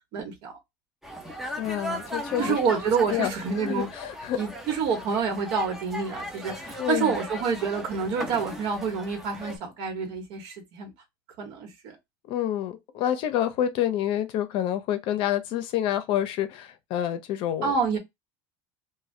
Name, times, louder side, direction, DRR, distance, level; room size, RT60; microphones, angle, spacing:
voice 1, 0.1-0.5 2.4-3.9 4.4-10.9 11.4-12.0 17.6-18.0, right 5 dB, 60° right, 1.1 m, -28 dB
sound 1, 1.0-9.6, equal, 5° right, 0.6 m, -38 dB
voice 2, 1.6-2.6 3.1-4.4 6.8-7.2 12.3-17.7, left 11 dB, 55° left, 0.6 m, -28 dB
2.6 x 2.2 x 3.1 m
cardioid pair, 145°, 11 cm